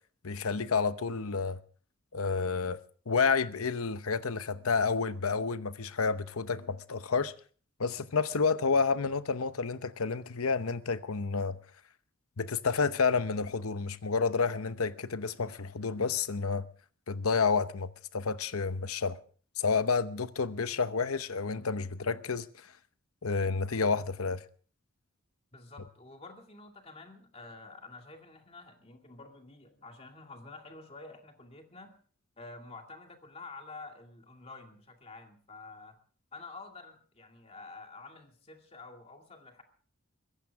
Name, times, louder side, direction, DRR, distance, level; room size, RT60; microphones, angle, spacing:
voice 1, 0.2-1.6 2.1-2.8 3.1-7.3 7.8-11.6 12.4-16.6 17.1-19.2 19.6-22.5 23.2-24.4, left 5 dB, 85° left, 0.9 m, -30 dB
voice 2, 25.5-31.9 32.4-36.0 36.3-39.6, left 3 dB, 30° left, 2.4 m, -49 dB
23.0 x 15.5 x 3.6 m
head